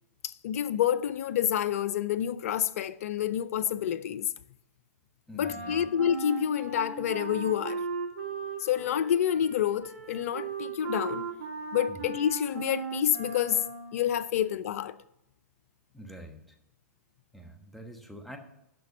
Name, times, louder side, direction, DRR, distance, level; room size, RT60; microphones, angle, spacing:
voice 1, 0.2-4.3 5.3-7.8 8.6-11.3 11.7-13.6 13.9-15.0, left 10 dB, 65° left, 0.5 m, -28 dB
voice 2, 5.3-5.9 11.9-12.0 15.9-16.5 17.3-18.4, equal, ahead, 1.1 m, -46 dB
Wind instrument woodwind instrument, 5.4-14.0, right 5 dB, 65° right, 1.9 m, -37 dB
6.9 x 6.0 x 7.1 m
hypercardioid pair, 110°, 8 cm